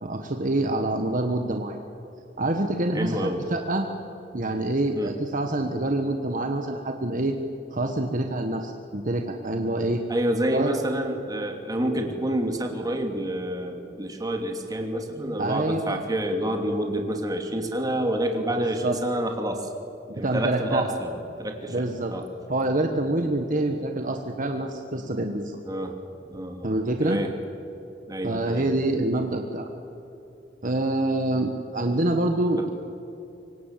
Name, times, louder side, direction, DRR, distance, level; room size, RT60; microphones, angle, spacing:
voice 1, 0.0-1.8 2.4-3.9 4.3-7.4 7.7-10.0 10.5-10.7 15.4-16.0 18.5-19.0 20.2-20.9 21.7-22.1 22.5-25.6 26.6-27.2 28.2-29.7 30.6-32.7, right 1 dB, 50° right, 5 dB, 1.4 m, -26 dB
voice 2, 2.9-3.4 4.9-5.1 10.1-19.7 20.1-22.3 25.7-26.0 26.2-26.7 27.0-27.3 28.1-28.7 32.6-32.7, right 1 dB, 20° right, 3 dB, 2.7 m, -28 dB
25.0 x 24.5 x 7.6 m, 2.9 s
head